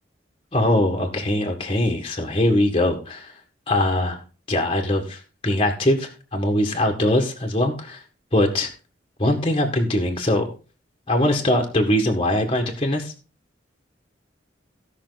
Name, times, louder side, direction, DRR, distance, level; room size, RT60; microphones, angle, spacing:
voice 1, 0.5-3.3 3.7-4.2 4.5-8.0 8.3-8.7 9.2-10.5 11.1-13.1, left 1 dB, 30° left, 3 dB, 1.8 m, -21 dB
16.5 x 6.0 x 4.0 m, 0.36 s
head